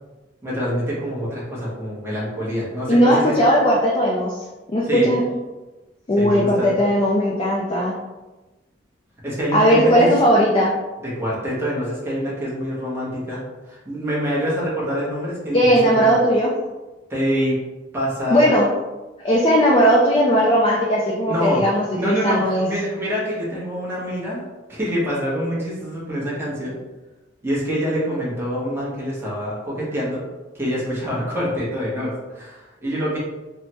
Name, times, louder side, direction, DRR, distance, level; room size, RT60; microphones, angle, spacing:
voice 1, 0.4-3.3 4.9-5.1 6.2-6.7 9.2-10.1 11.0-13.4 13.7-16.2 17.1-17.6 17.9-18.4 21.3-21.6 21.9-26.8 27.4-30.2 30.5-33.2, equal, 15° right, -7 dB, 0.8 m, -25 dB
voice 2, 2.9-4.4 4.7-5.2 6.1-7.9 9.5-10.7 15.5-16.5 18.3-18.7 19.2-22.7, equal, 30° left, -4 dB, 0.4 m, -17 dB
3.1 x 2.1 x 2.8 m, 1.1 s
head